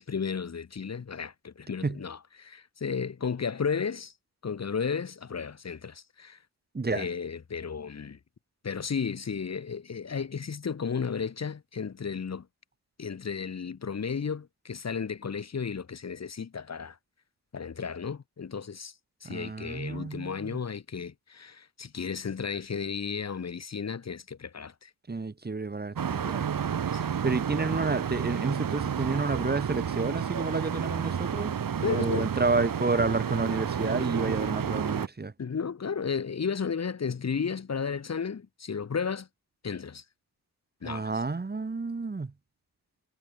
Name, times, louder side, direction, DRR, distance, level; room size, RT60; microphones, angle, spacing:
voice 1, 0.0-4.1 4.4-6.4 6.9-8.2 8.6-12.5 13.0-17.0 17.5-18.9 19.2-24.9 26.9-27.1 31.8-32.3 35.4-39.3 39.6-40.0 40.8-41.1, left 6 dB, 40° left, 2.3 m, -33 dB
voice 2, 6.7-7.1 19.2-20.6 25.1-26.5 27.2-35.3 40.8-42.3, right 3 dB, 25° right, 2.3 m, -30 dB
sound 1, 26.0-35.1, right 8 dB, 60° right, 3.8 m, -31 dB
cardioid pair, 85°, 38 cm